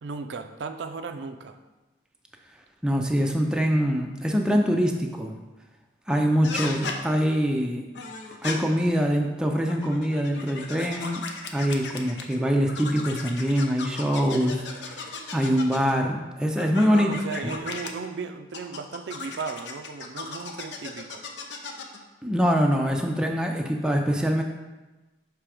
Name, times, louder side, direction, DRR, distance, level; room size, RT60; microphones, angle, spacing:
voice 1, 0.0-1.6 16.9-21.2, right 4 dB, 75° right, 8 dB, 0.4 m, -35 dB
voice 2, 2.8-5.4 6.1-7.9 8.4-11.2 11.5-17.1 17.4-17.5 22.2-24.4, equal, 5° right, 2 dB, 0.4 m, -24 dB
sound 1, 6.4-7.0 7.9-8.6 9.6-12.4 12.7-15.9 16.6-17.9 18.5-22.0, left 4 dB, 75° left, 0.6 m, -36 dB
6.0 x 3.3 x 4.9 m, 1.1 s
head